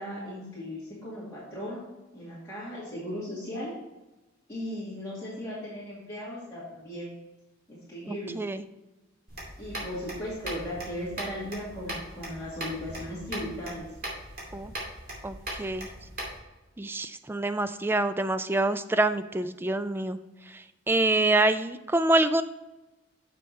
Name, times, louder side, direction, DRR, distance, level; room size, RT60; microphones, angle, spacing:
voice 1, 0.0-1.8 2.1-3.7 4.5-7.1 7.7-8.4 9.6-13.9, equal, 15° left, -10 dB, 2.3 m, -37 dB
voice 2, 8.1-8.6 14.5-14.7 15.2-15.9 16.8-20.2 20.9-22.4, right 2 dB, 10° right, 12 dB, 0.3 m, -26 dB
sound 1, 9.3-16.4, right 1 dB, 50° right, 2.6 m, -39 dB
6.9 x 6.4 x 4.2 m, 1.1 s
head